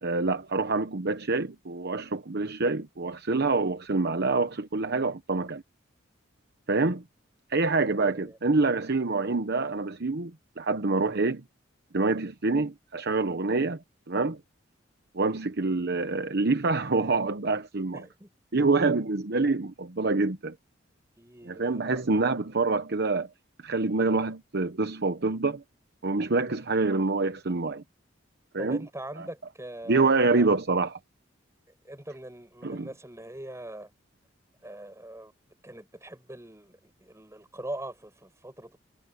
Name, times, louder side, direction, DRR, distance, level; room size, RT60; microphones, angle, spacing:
voice 1, 0.0-5.6 6.7-7.0 7.5-11.4 11.9-13.8 14.1-14.4 15.1-18.0 18.5-20.5 21.4-23.3 23.6-25.6 26.0-27.8 28.5-28.9 29.2-29.3 29.9-31.0 32.6-32.9, right 3 dB, 55° right, 1.0 m, -26 dB
voice 2, 8.0-8.4 17.9-18.3 21.2-22.0 28.6-30.5 31.9-33.9 34.6-35.3 35.6-38.8, right 1 dB, 15° right, 7.0 m, -42 dB
head